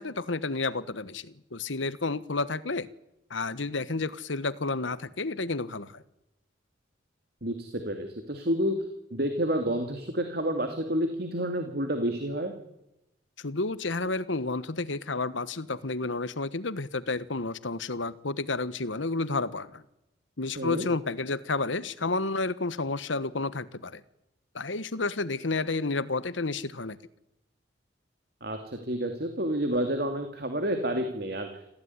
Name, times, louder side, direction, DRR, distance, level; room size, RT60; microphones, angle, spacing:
voice 1, 0.0-2.9 3.3-6.0 13.4-19.8 20.4-24.0 24.5-27.0, left 3 dB, 80° left, 16 dB, 1.3 m, -31 dB
voice 2, 7.4-8.8 9.1-12.5 20.6-20.9 28.4-31.5, right 1 dB, 55° right, 6 dB, 2.6 m, -29 dB
27.0 x 15.5 x 9.7 m, 0.87 s
head